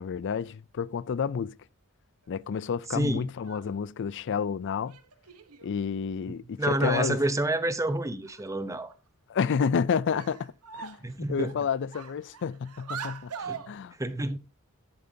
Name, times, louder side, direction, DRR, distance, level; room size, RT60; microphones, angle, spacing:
voice 1, 0.0-1.6 2.3-5.0 5.6-7.2 9.3-11.0 11.3-13.3 13.7-13.9, left 6 dB, 55° left, 0.4 m, -30 dB
voice 2, 2.9-3.3 6.6-8.9 11.0-11.5 13.4-13.6 14.0-14.4, right 1 dB, 15° right, 0.7 m, -28 dB
sound 1, 3.3-3.8 4.9-5.7 6.9-7.0 7.4-7.5 7.9-8.0 8.2-8.9 9.5-9.7 10.1-11.1 11.4-13.7, right 6 dB, 85° right, 1.0 m, -42 dB
10.5 x 8.9 x 2.7 m
head